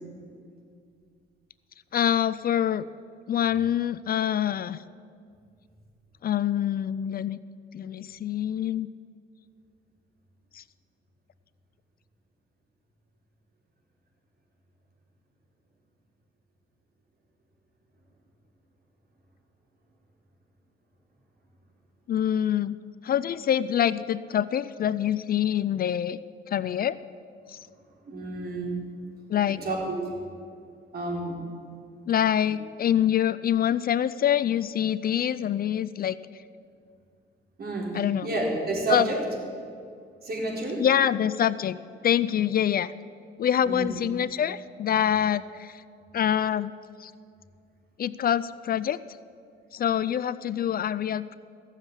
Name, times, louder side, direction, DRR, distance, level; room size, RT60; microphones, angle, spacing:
voice 1, 1.9-2.9 3.3-4.8 6.2-7.4 7.7-8.9 10.5-10.6 22.1-22.8 23.0-26.2 26.5-27.0 27.5-27.7 29.3-29.6 32.1-36.2 37.9-38.3 38.9-39.1 40.8-41.8 42.0-42.9 43.4-45.8 46.1-46.7 47.0-47.1 48.0-49.0 49.7-51.4, left 10 dB, 50° left, 17 dB, 0.4 m, -25 dB
voice 2, 28.1-28.8 29.5-30.0 30.9-31.4 37.6-39.2 40.2-40.8 43.6-43.9, right 2 dB, 50° right, -1 dB, 4.1 m, -30 dB
15.5 x 7.3 x 9.8 m, 2.3 s
cardioid pair, 90°, 20 cm